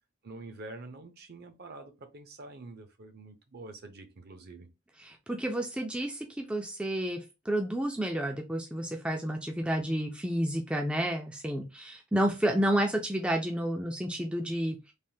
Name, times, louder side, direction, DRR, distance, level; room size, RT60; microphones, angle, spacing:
voice 1, 0.2-4.7, right 2 dB, 50° right, 0.6 m, -46 dB
voice 2, 5.0-14.9, right 1 dB, 5° right, 0.3 m, -30 dB
3.3 x 2.1 x 2.7 m
head